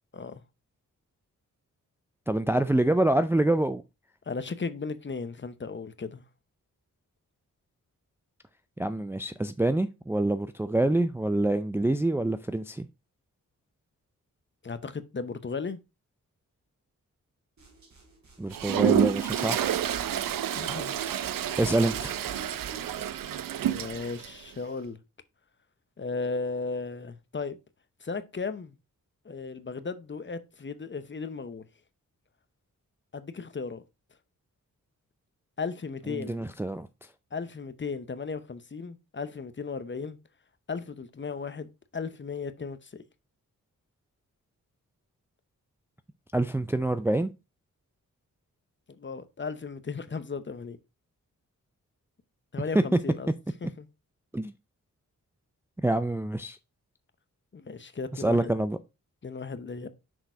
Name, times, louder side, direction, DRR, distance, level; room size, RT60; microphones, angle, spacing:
voice 1, 2.3-3.8 8.8-12.9 18.4-19.9 21.6-22.2 36.1-36.9 46.3-47.3 54.3-54.5 55.8-56.6 58.1-58.8, right 1 dB, 5° right, 0.4 m, -26 dB
voice 2, 4.3-6.2 14.6-15.8 20.5-21.0 23.6-25.0 26.0-27.6 28.0-28.7 29.2-31.7 33.1-33.8 35.6-36.4 37.3-40.2 40.7-43.0 49.0-50.8 52.5-53.3 53.6-53.9 57.5-58.5 59.2-59.9, left 4 dB, 35° left, 0.8 m, -36 dB
sound 1, 17.6-22.9, right 4 dB, 55° right, 3.2 m, -47 dB
Toilet flush, 18.5-24.3, right 10 dB, 80° right, 0.6 m, -29 dB
6.2 x 4.0 x 4.5 m
cardioid pair, 70°, 33 cm